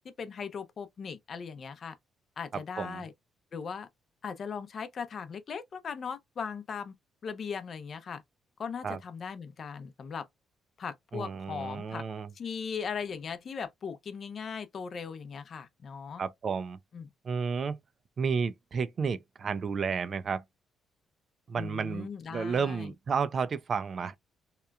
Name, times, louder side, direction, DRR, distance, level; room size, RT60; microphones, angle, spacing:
voice 1, 0.2-2.0 2.4-3.1 3.5-3.9 4.2-6.9 7.2-8.2 8.6-10.2 10.8-12.0 12.3-16.2 16.9-17.1 21.6-22.9, left 6 dB, 50° left, 0.5 m, -38 dB
voice 2, 11.1-12.3 16.2-16.8 17.2-17.8 18.2-20.4 21.5-24.2, right 5 dB, 50° right, 0.4 m, -32 dB
2.9 x 2.2 x 2.3 m
cardioid pair, 90°, 0 cm